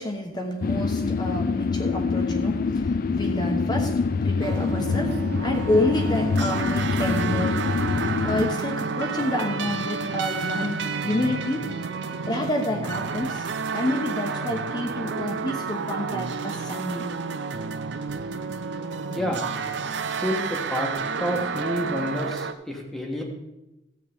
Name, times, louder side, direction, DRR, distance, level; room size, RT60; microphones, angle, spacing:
voice 1, 0.0-11.7 12.3-13.5 13.7-17.1, left 1 dB, 25° left, 2 dB, 1.0 m, -29 dB
sound 1, 0.6-8.5, left 4 dB, 50° left, 0.4 m, -25 dB
sound 2, 4.4-22.5, right 5 dB, 65° right, 0.5 m, -30 dB
voice 2, 19.1-19.5 20.2-20.9 21.2-23.2, equal, ahead, -1 dB, 1.3 m, -29 dB
14.0 x 8.3 x 3.5 m, 0.94 s
head